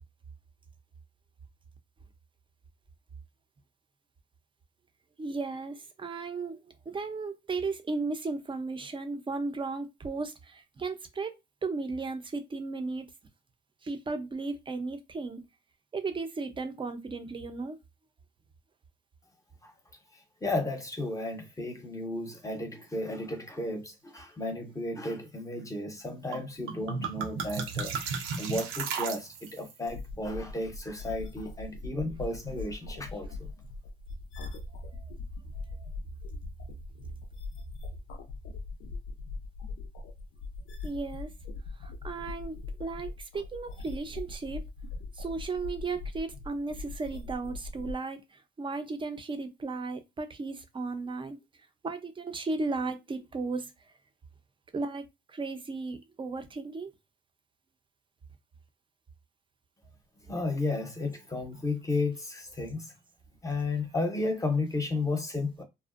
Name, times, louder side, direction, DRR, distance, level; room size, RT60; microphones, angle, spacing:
voice 1, 5.2-6.6 6.9-11.3 11.6-13.1 13.8-15.4 15.9-17.8 35.0-35.1 40.8-41.3 41.8-44.6 45.2-48.2 48.6-51.4 51.8-53.7 54.7-55.0 55.3-56.9, right 3 dB, 25° right, 0.5 m, -35 dB
voice 2, 20.4-27.9 28.4-33.5 60.3-62.9 63.4-65.6, left 2 dB, 15° left, 0.7 m, -33 dB
sound 1, 26.3-26.4 26.7-29.7, right 5 dB, 90° right, 0.5 m, -34 dB
sound 2, 29.9-47.9, left 3 dB, 85° left, 0.5 m, -41 dB
2.5 x 2.1 x 2.4 m
cardioid pair, 90°, 20 cm